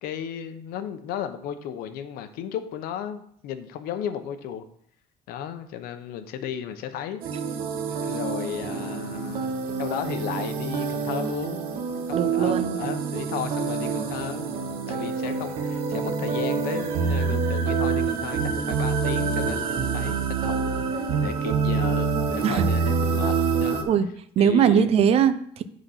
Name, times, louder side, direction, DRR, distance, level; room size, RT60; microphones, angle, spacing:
voice 1, 0.0-4.6 5.3-7.2 7.9-11.6 12.1-14.5 14.9-23.9 24.4-24.9, left 9 dB, 85° left, 9 dB, 0.9 m, -34 dB
sound 1, 7.2-23.8, right 5 dB, 80° right, 1.0 m, -26 dB
voice 2, 12.1-12.8 22.4-22.6 23.9-24.1 24.4-25.6, right 8 dB, 45° right, 12 dB, 0.5 m, -21 dB
7.9 x 4.1 x 5.8 m, 0.66 s
cardioid pair, 170°, 15 cm